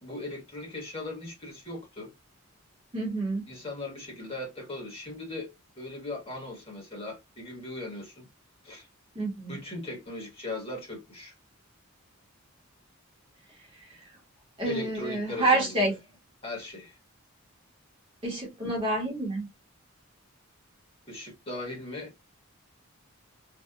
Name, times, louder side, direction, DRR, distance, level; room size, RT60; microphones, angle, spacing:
voice 1, 0.0-2.1 3.5-8.3 8.6-8.9 9.5-11.3 14.6-15.7 16.4-17.0 21.1-22.1, left 2 dB, 25° left, 1.2 m, -38 dB
voice 2, 2.9-3.4 9.1-9.6 13.6-14.1 14.6-15.9 18.2-19.5, right 2 dB, 25° right, 1.0 m, -28 dB
2.7 x 2.3 x 2.3 m
head